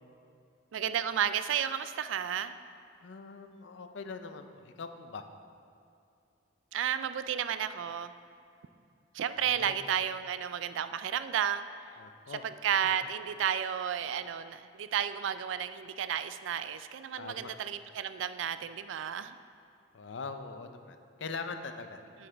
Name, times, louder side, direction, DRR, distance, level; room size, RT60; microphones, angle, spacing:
voice 1, 0.7-2.6 6.7-8.1 9.1-11.6 12.3-19.4, right 9 dB, 90° right, 12 dB, 0.3 m, -32 dB
voice 2, 3.0-5.2 9.4-9.8 12.0-12.4 12.8-13.0 17.2-17.6 19.9-22.0, left 4 dB, 70° left, 8 dB, 0.5 m, -42 dB
8.6 x 7.9 x 3.4 m, 2.5 s
head